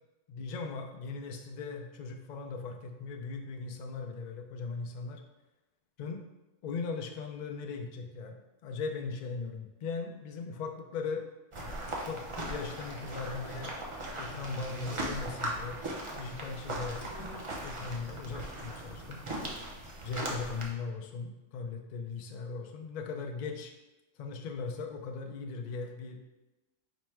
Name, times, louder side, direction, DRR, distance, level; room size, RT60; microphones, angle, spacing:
voice 1, 0.3-5.2 6.0-6.2 6.6-11.3 12.0-13.8 14.2-15.8 16.2-17.0 17.6-19.2 20.0-23.7 24.2-26.2, left 4 dB, 85° left, 3 dB, 0.4 m, -38 dB
sound 1, 11.5-20.7, right 1 dB, 35° right, 0.5 m, -39 dB
5.1 x 2.1 x 4.5 m, 1.1 s
omnidirectional pair, 1.3 m